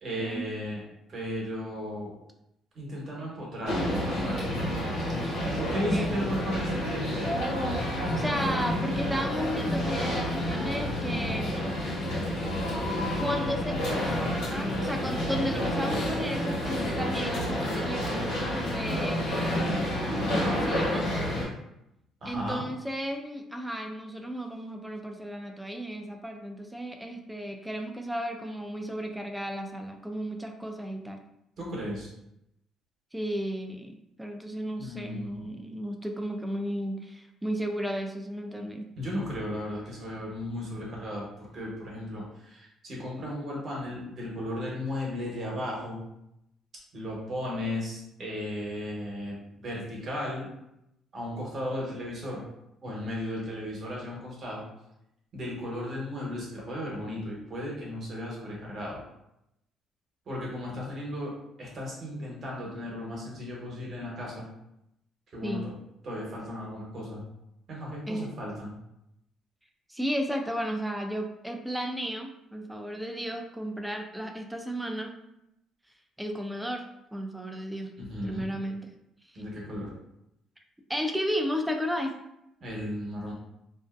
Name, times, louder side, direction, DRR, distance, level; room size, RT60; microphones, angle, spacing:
voice 1, 0.0-0.8 1.1-2.2 2.7-4.5 5.4-7.3 15.0-15.4 22.2-22.6 31.6-32.1 34.8-35.5 39.0-46.0 46.9-50.5 51.1-52.4 52.8-54.6 55.3-59.0 60.3-61.3 61.6-64.5 65.3-65.6 66.0-67.2 67.7-68.8 78.0-78.5 79.3-79.9 82.6-83.3, left 1 dB, 50° right, -4 dB, 1.0 m, -35 dB
sound 1, 3.6-21.4, equal, 90° left, 1.0 m, -29 dB
voice 2, 5.7-6.1 8.2-11.8 13.2-20.0 20.5-21.3 22.3-31.2 33.1-38.9 65.4-65.7 68.1-68.3 69.9-75.1 76.2-76.8 77.1-77.9 78.2-78.9 79.3-79.4 80.9-82.1, equal, 5° right, 3 dB, 0.4 m, -34 dB
2.5 x 2.1 x 2.4 m, 0.83 s
cardioid pair, 85°, 0 cm